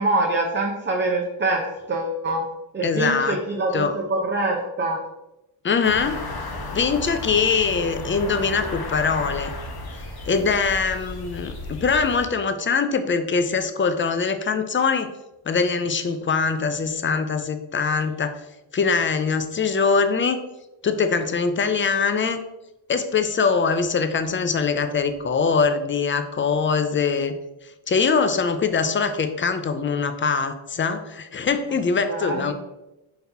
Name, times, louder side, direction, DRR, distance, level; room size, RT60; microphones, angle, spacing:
voice 1, 0.0-2.4 2.7-5.0 32.1-32.5, right 2 dB, 25° right, 0 dB, 0.6 m, -24 dB
voice 2, 2.8-3.4 3.7-3.9 5.6-6.2 6.7-9.5 10.3-15.1 15.5-18.4 18.7-20.4 20.8-22.4 22.9-27.3 27.9-32.5, left 5 dB, 30° left, 9 dB, 0.4 m, -22 dB
sound 1, 5.8-12.3, left 2 dB, 50° left, 0.9 m, -34 dB
3.9 x 2.8 x 3.4 m, 0.95 s
cardioid pair, 55°, 48 cm